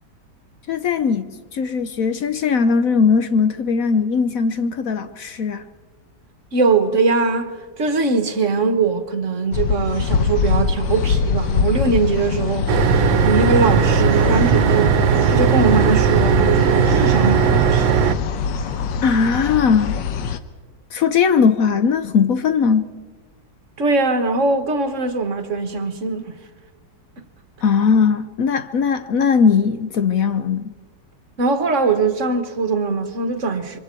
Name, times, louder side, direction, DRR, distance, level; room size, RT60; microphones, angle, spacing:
voice 1, 0.7-5.6 19.0-20.0 20.9-23.0 27.6-30.7, left 6 dB, 60° left, 1.0 m, -19 dB
voice 2, 6.5-15.0 15.3-17.9 23.8-26.3 31.4-33.8, right 3 dB, 45° right, 1.5 m, -21 dB
sound 1, 9.5-20.4, left 6 dB, 75° left, 1.6 m, -23 dB
sound 2, 12.7-18.2, right 8 dB, 90° right, 1.6 m, -17 dB
27.0 x 24.0 x 4.5 m
omnidirectional pair, 2.0 m